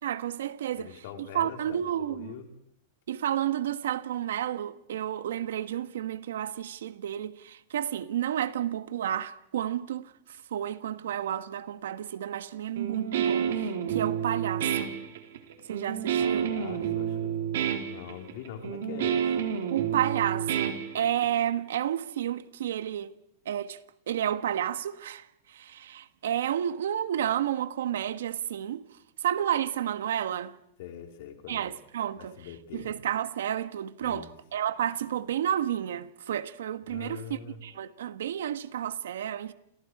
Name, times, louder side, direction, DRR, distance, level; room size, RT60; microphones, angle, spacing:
voice 1, 0.0-0.9 1.3-2.3 3.1-10.1 10.5-14.9 15.7-16.5 19.7-23.1 23.4-23.8 24.1-28.8 29.2-30.5 31.5-32.4 32.7-39.5, right 10 dB, 90° right, 1.4 m, -31 dB
voice 2, 0.8-2.5 15.9-17.4 17.8-19.3 30.8-31.7 32.2-32.9 34.0-34.3 36.9-37.6, left 9 dB, 50° left, 4.1 m, -43 dB
Guitar, 12.8-21.4, right 8 dB, 65° right, 3.7 m, -29 dB
29.0 x 29.0 x 4.9 m
supercardioid pair, 175°, 0 cm